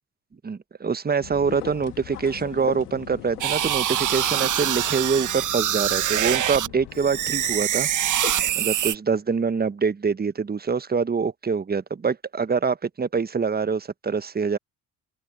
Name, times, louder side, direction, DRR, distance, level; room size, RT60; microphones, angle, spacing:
voice 1, 0.4-7.9 8.5-14.6, right 5 dB, 20° right, 1.3 m, -25 dB
sound 1, 1.2-7.6, left 16 dB, 55° left, 1.7 m, -43 dB
sound 2, 1.5-8.8, left 12 dB, 80° left, 3.1 m, -42 dB
sound 3, 3.4-6.7 7.0-9.0, right 11 dB, 40° right, 1.4 m, -24 dB
open air
figure-of-eight pair, 55°, 46 cm